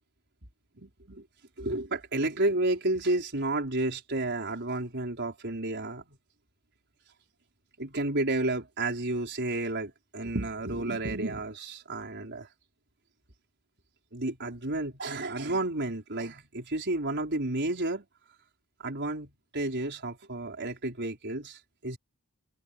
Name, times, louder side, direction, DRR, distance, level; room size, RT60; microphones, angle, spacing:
voice 1, 0.8-1.2 1.6-6.2 7.8-12.5 14.1-18.0 18.8-22.0, right 2 dB, 55° right, 4.9 m, -31 dB
head